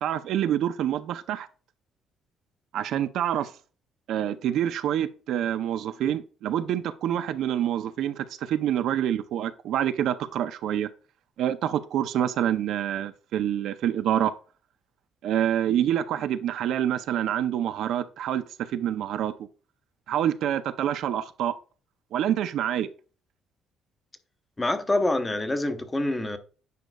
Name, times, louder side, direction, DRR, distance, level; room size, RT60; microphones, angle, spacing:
voice 1, 0.0-1.5 2.7-3.5 4.1-10.9 11.4-14.3 15.2-19.3 20.1-21.5 22.1-22.9, right 10 dB, 65° right, 0.5 m, -27 dB
voice 2, 24.6-26.4, left 2 dB, 15° left, 0.7 m, -26 dB
9.3 x 5.2 x 2.3 m
cardioid pair, 150°, 0 cm